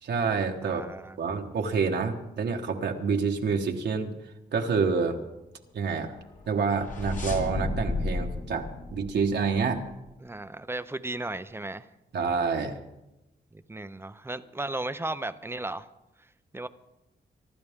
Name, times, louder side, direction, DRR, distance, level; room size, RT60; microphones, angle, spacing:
voice 1, 0.0-0.8 1.2-4.1 4.5-5.2 5.7-6.1 6.5-9.8 12.1-12.8, right 5 dB, 80° right, 2 dB, 1.3 m, -27 dB
voice 2, 0.6-1.2 10.2-11.9 13.5-15.9 16.5-16.7, right 2 dB, 15° right, 12 dB, 0.6 m, -35 dB
sound 1, 6.3-9.9, left 2 dB, 45° left, 2.2 m, -33 dB
25.0 x 12.0 x 3.6 m, 0.96 s
wide cardioid pair, 120°, 18 cm